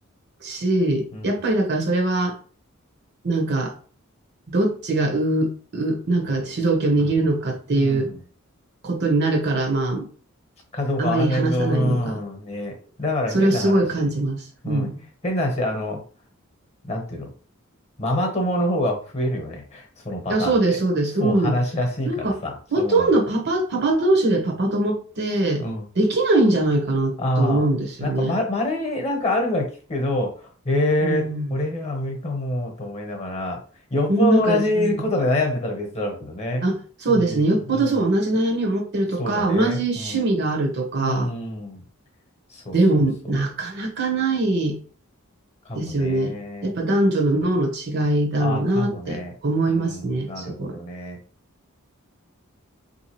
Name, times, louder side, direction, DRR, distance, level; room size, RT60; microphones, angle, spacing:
voice 1, 0.4-2.4 3.2-3.7 4.5-8.1 8.8-10.1 11.0-12.2 13.3-15.0 20.3-21.6 22.0-22.4 22.7-25.6 25.9-28.4 31.0-31.5 34.1-35.0 36.6-41.3 42.7-44.8 45.7-46.4 46.6-50.8, right 2 dB, 50° right, 0.8 m, -22 dB
voice 2, 7.7-8.2 10.7-12.7 13.0-14.1 14.6-14.9 15.2-16.0 16.8-17.3 18.0-20.8 21.2-23.1 25.6-25.8 27.2-27.7 28.0-33.6 33.9-36.6 37.1-37.9 39.2-40.3 41.0-41.8 42.5-42.8 43.3-43.4 45.7-46.7 48.4-49.3 49.7-51.2, left 1 dB, 30° left, 0.9 m, -26 dB
3.5 x 2.7 x 3.0 m
head